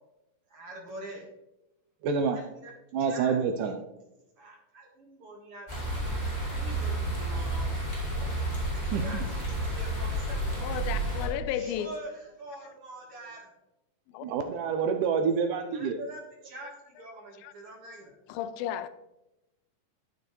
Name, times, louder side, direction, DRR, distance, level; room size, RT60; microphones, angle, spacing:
voice 1, 0.5-1.3 2.2-2.7 3.0-3.8 4.4-7.7 8.3-11.0 11.5-13.5 15.7-18.1, right 1 dB, 50° right, 2.2 m, -45 dB
voice 2, 2.0-2.4 2.9-3.8 8.9-9.2 14.2-16.0, right 6 dB, 80° right, 2.0 m, -27 dB
sound 1, 5.7-11.3, right 1 dB, 15° left, 2.2 m, -31 dB
voice 3, 10.6-11.9 14.2-14.3 17.4-17.5 18.3-18.9, left 11 dB, 90° left, 2.4 m, -33 dB
11.5 x 7.0 x 3.1 m
omnidirectional pair, 4.1 m